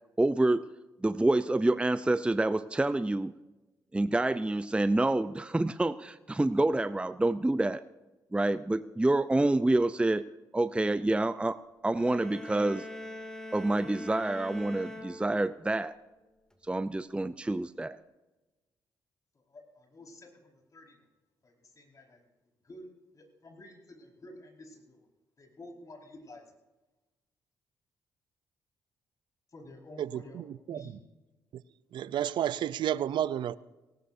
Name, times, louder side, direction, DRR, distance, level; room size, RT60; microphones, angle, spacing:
voice 1, 0.2-0.7 1.0-3.3 3.9-7.8 8.3-10.2 10.5-12.9 13.5-15.9 16.7-18.0, right 2 dB, 10° right, 0.6 m, -27 dB
sound 1, 11.9-15.8, left 1 dB, 10° left, 2.4 m, -43 dB
voice 2, 19.3-21.0 21.4-22.2 22.6-25.1 25.4-26.4 29.5-30.4 30.7-31.0, left 1 dB, 40° left, 4.9 m, -51 dB
voice 3, 30.0-31.0 31.5-31.6 31.9-33.6, right 11 dB, 65° right, 0.5 m, -32 dB
18.5 x 18.5 x 2.7 m
supercardioid pair, 50°, 9 cm